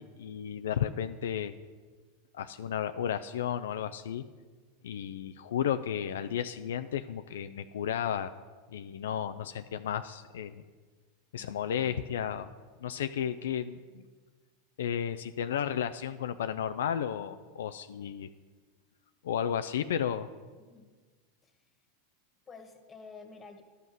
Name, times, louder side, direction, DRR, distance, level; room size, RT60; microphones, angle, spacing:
voice 1, 0.0-1.5 2.3-4.2 4.8-8.3 8.7-10.5 11.3-12.5 12.8-14.0 14.8-18.3 19.2-20.3, left 9 dB, 80° left, 10 dB, 0.3 m, -33 dB
voice 2, 20.6-20.9 21.4-21.7 22.5-23.6, left 4 dB, 25° left, 5 dB, 1.5 m, -51 dB
12.0 x 5.7 x 6.2 m, 1.4 s
hypercardioid pair, 105°, 0 cm